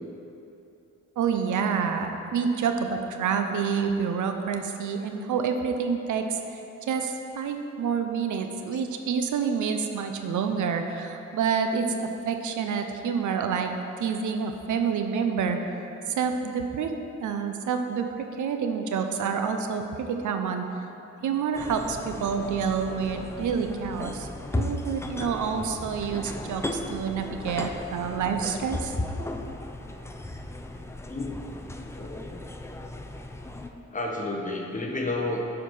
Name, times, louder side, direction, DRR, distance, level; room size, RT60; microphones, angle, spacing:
voice 1, 1.2-6.6 6.9-12.0 12.2-13.7 14.0-15.6 16.1-16.9 17.2-20.7 21.2-24.3 24.6-28.9, right 6 dB, 75° right, 6 dB, 0.7 m, -28 dB
sound 1, 21.5-33.7, left 1 dB, 10° left, 0.4 m, -35 dB
voice 2, 32.0-32.5 33.9-35.4, left 2 dB, 25° left, 0 dB, 1.1 m, -31 dB
8.4 x 4.7 x 5.5 m, 2.9 s
cardioid pair, 95°, 30 cm